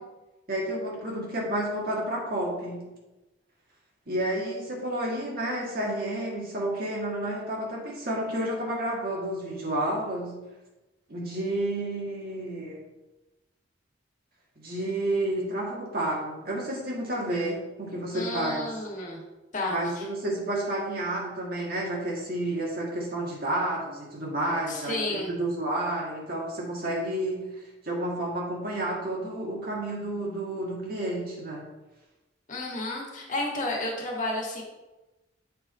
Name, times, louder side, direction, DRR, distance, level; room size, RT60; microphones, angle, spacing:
voice 1, 0.5-2.9 4.1-10.4 11.1-12.8 14.6-18.6 19.7-31.7, right 1 dB, 50° right, -3 dB, 1.8 m, -30 dB
voice 2, 18.1-19.2 19.5-20.0 24.7-25.3 32.5-34.6, left 2 dB, 40° left, -1 dB, 1.6 m, -32 dB
7.6 x 4.8 x 4.2 m, 1.1 s
head